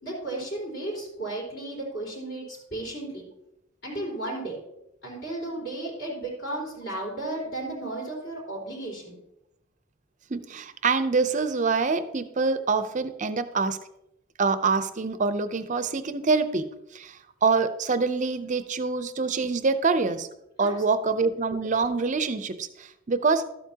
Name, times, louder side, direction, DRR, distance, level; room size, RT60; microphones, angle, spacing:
voice 1, 0.0-3.3 3.8-4.6 5.0-9.2 20.6-20.7, right 2 dB, 55° left, -4 dB, 3.8 m, -34 dB
voice 2, 10.3-13.8 14.4-20.3 20.6-23.4, right 4 dB, 35° right, 11 dB, 0.5 m, -25 dB
12.5 x 8.3 x 2.8 m, 0.85 s
head